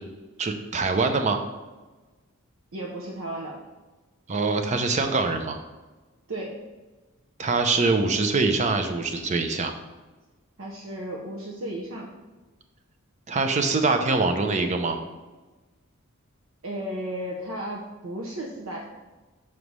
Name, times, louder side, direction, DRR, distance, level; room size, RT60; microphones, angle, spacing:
voice 1, 0.4-1.4 4.3-5.6 7.4-9.7 13.3-15.0, right 3 dB, 35° right, 6 dB, 0.5 m, -24 dB
voice 2, 2.7-3.6 6.3-6.6 10.6-12.1 16.6-18.9, right 1 dB, 65° right, -2 dB, 0.7 m, -34 dB
6.0 x 3.2 x 5.3 m, 1.2 s
head